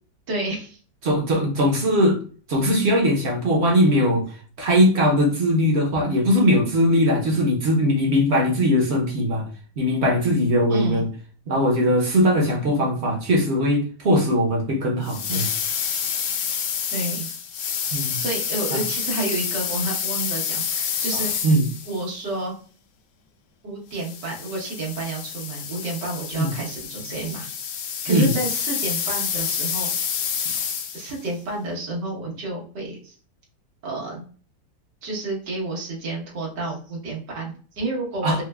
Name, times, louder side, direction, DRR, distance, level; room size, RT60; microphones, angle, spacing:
voice 1, 0.3-0.8 10.7-11.0 16.9-17.3 18.2-21.5 21.9-22.5 23.6-27.6 28.0-29.9 30.9-33.2 33.8-34.3 35.0-38.4, right 2 dB, 85° right, 1.9 m, -30 dB
voice 2, 1.0-2.2 2.5-9.5 9.8-11.1 11.5-15.5 17.9-18.2 18.7-18.8 21.1-21.7 26.3-26.5 28.1-28.4 38.2-38.4, equal, 50° right, 0.8 m, -20 dB
sound 1, 15.0-22.1 23.9-31.2, left 7 dB, 80° left, 1.2 m, -28 dB
4.7 x 2.1 x 2.2 m
omnidirectional pair, 1.8 m